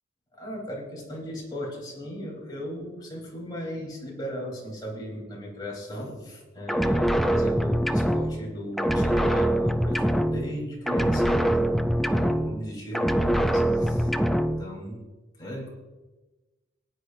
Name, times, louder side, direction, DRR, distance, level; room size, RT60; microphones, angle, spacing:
voice 1, 0.3-14.1 14.6-15.0 15.4-15.7, equal, 20° left, -3 dB, 3.6 m, -36 dB
sound 1, 6.7-8.5 8.8-10.6 10.9-12.7 12.9-14.6, right 1 dB, ahead, 0.4 m, -24 dB
19.0 x 10.0 x 2.6 m, 1.2 s
head